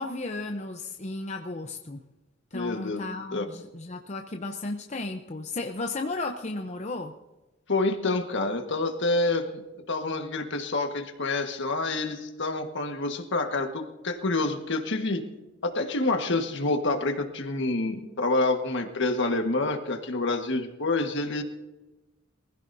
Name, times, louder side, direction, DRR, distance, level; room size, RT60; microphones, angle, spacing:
voice 1, 0.0-2.0 2.5-7.1, left 2 dB, 35° left, 4 dB, 0.8 m, -34 dB
voice 2, 2.5-3.0 3.3-3.5 7.7-9.5 9.9-15.2 15.6-21.4, left 2 dB, 60° left, 5 dB, 1.6 m, -27 dB
23.5 x 15.5 x 2.7 m, 1.1 s
head